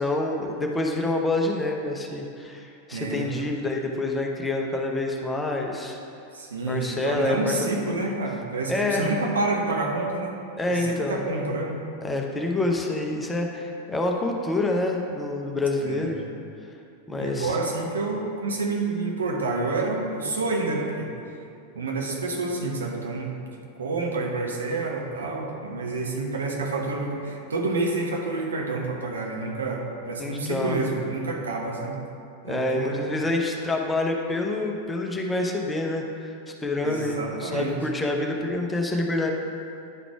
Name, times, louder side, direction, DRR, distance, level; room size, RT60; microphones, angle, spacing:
voice 1, 0.0-6.0 6.7-8.1 8.7-9.1 10.6-11.2 12.0-16.2 17.1-17.5 30.2-30.8 32.4-36.3 36.6-39.3, left 2 dB, 10° left, 1 dB, 0.8 m, -27 dB
voice 2, 2.9-3.5 6.3-10.4 10.7-11.8 15.8-16.2 17.1-21.1 21.7-32.0 32.5-33.0 36.8-37.8, right 3 dB, 70° right, 0 dB, 1.0 m, -28 dB
10.0 x 4.0 x 4.7 m, 2.5 s
figure-of-eight pair, 90°, 0 cm